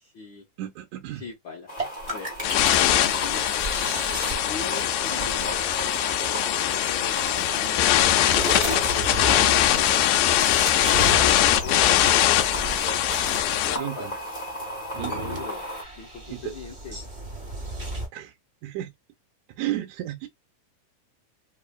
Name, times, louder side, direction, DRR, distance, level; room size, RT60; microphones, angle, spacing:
voice 1, 0.0-0.5 1.1-1.7 2.1-2.3 2.7-3.5 4.4-7.8 8.9-10.0 10.5-12.6 13.5-14.1 14.9-15.6 16.0-17.0, left 5 dB, 70° left, 1.1 m, -40 dB
voice 2, 0.6-1.2 13.8-14.2 15.0-15.3 16.3-16.4 18.1-18.3 18.6-18.9 19.5-20.3, right 14 dB, 80° right, 1.9 m, -33 dB
sound 1, 1.7-15.8, equal, 50° left, 0.5 m, -35 dB
sound 2, 1.8-6.2 6.8-13.6 14.5-18.1, right 1 dB, 30° right, 0.8 m, -35 dB
sound 3, 2.4-13.8, left 12 dB, 90° left, 2.1 m, -22 dB
4.9 x 2.5 x 2.3 m
omnidirectional pair, 3.6 m